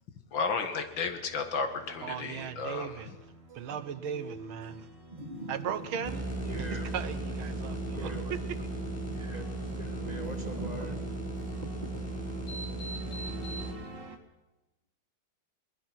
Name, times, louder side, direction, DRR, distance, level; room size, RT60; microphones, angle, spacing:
voice 1, 0.3-3.0, left 4 dB, 65° left, 2.3 m, -33 dB
sound 1, 0.7-14.2, right 2 dB, 60° right, 2.6 m, -48 dB
voice 2, 2.0-3.1 3.6-4.9 5.5-6.3 6.6-8.6, right 8 dB, 80° right, 1.9 m, -37 dB
voice 3, 5.1-6.1 6.4-6.9 7.6-8.3 9.0-11.1 11.8-12.0 13.1-13.2, right 2 dB, 20° right, 1.3 m, -41 dB
sound 2, 5.3-14.1, left 1 dB, 45° left, 2.2 m, -49 dB
sound 3, 6.0-13.7, right 2 dB, 5° left, 4.6 m, -36 dB
21.5 x 21.5 x 6.1 m
omnidirectional pair, 2.3 m